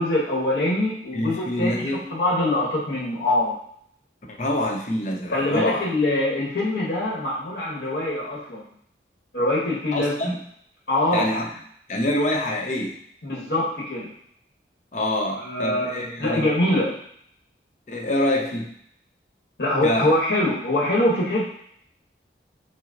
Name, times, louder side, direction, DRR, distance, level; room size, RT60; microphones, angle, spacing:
voice 1, 0.0-1.8 2.1-3.6 5.3-8.6 9.3-10.2 10.9-11.3 13.2-14.1 15.4-17.0 19.6-21.4, left 1 dB, 80° left, -6 dB, 1.2 m, -23 dB
voice 2, 1.1-2.1 4.3-5.9 9.9-10.4 11.1-11.6 11.9-13.0 14.9-16.5 17.9-18.8 19.8-20.1, left 1 dB, 40° left, 1 dB, 0.7 m, -26 dB
5.9 x 2.0 x 3.8 m, 0.67 s
head